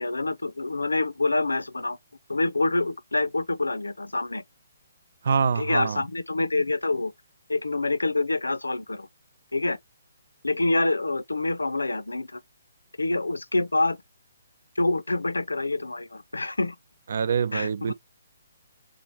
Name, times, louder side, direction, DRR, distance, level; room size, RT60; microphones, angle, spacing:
voice 1, 0.0-2.0 2.3-4.4 5.6-7.1 7.5-9.1 9.5-9.8 10.4-12.4 13.0-14.0 14.8-16.8 17.5-17.9, left 2 dB, 75° left, 0.4 m, -26 dB
voice 2, 5.2-6.0 17.1-17.9, right 6 dB, 50° right, 0.4 m, -25 dB
3.7 x 3.0 x 4.6 m
figure-of-eight pair, 135°, 0 cm